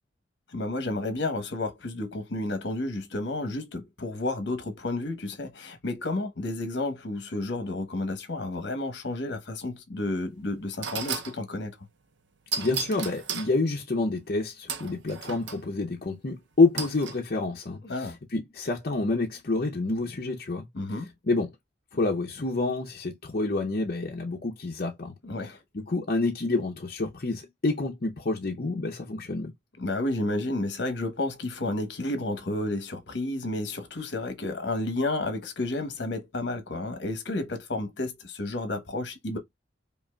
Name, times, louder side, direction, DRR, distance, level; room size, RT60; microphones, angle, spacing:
voice 1, 0.5-11.8 17.8-18.2 20.7-21.1 25.2-25.6 29.8-39.4, left 2 dB, 70° left, 1.0 m, -31 dB
sound 1, 10.1-10.2 10.8-11.4 12.5-13.5 14.7-15.6 16.8-17.2, right 6 dB, 70° right, 0.6 m, -34 dB
voice 2, 12.6-20.7 21.3-21.5 21.9-25.1 25.4-29.5, left 3 dB, 50° left, 0.7 m, -28 dB
5.4 x 2.4 x 2.3 m
head